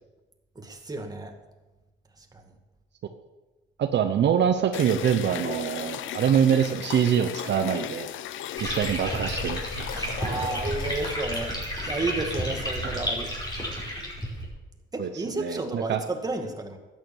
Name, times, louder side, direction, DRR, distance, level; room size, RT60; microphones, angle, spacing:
voice 1, 0.6-1.3 2.2-2.4 10.0-11.6 11.8-13.3 13.8-13.9 14.9-16.8, right 3 dB, 20° right, 4 dB, 2.0 m, -32 dB
voice 2, 3.8-8.1 8.6-9.9 15.0-15.1 15.4-16.0, right 8 dB, 60° right, 8 dB, 0.9 m, -24 dB
sound 1, 4.7-12.7, left 11 dB, 80° left, 0.7 m, -37 dB
sound 2, 8.6-14.5, equal, 20° left, 5.2 m, -31 dB
12.5 x 9.4 x 7.2 m, 1.2 s
cardioid pair, 90°, 20 cm